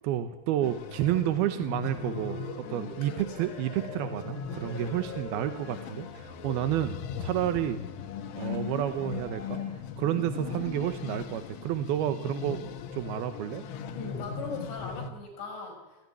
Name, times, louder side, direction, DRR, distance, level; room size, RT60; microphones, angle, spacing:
voice 1, 0.0-7.8 8.3-9.6 10.0-12.6 12.9-13.6, right 12 dB, 75° right, 9 dB, 2.4 m, -30 dB
sound 1, 0.6-15.1, left 7 dB, 85° left, 4.0 m, -39 dB
sound 2, 1.4-10.7, left 1 dB, 35° left, 5.8 m, -47 dB
voice 2, 2.6-3.5 13.9-15.8, left 4 dB, 60° left, 2 dB, 7.7 m, -40 dB
28.0 x 16.5 x 9.8 m, 1.1 s
omnidirectional pair, 5.6 m